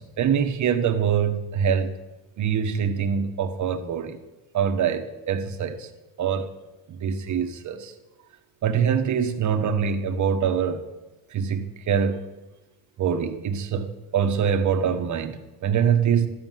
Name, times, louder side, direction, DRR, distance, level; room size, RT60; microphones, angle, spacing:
voice 1, 0.0-1.9 2.4-4.2 4.5-5.9 6.2-6.5 7.0-7.9 8.6-10.8 11.3-12.3 13.0-16.3, right 7 dB, 50° right, 1.3 m, -24 dB
13.5 x 7.0 x 9.1 m
cardioid pair, 145°, 38 cm